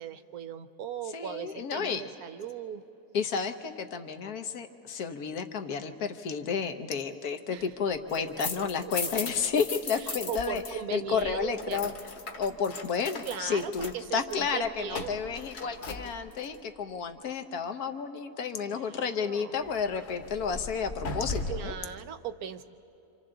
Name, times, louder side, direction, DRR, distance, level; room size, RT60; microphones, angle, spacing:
voice 1, 0.0-2.8 7.5-7.8 8.4-8.9 9.9-11.9 13.3-15.2 18.6-19.6 21.5-22.6, right 8 dB, 75° right, 10 dB, 1.2 m, -39 dB
voice 2, 1.1-2.0 3.1-10.6 10.9-11.9 12.4-21.7, left 6 dB, 75° left, 7 dB, 1.4 m, -31 dB
sound 1, 7.9-10.7 11.0-16.6 19.6-21.8, left 3 dB, 45° left, 1.3 m, -38 dB
27.0 x 27.0 x 3.8 m, 2.8 s
omnidirectional pair, 1.7 m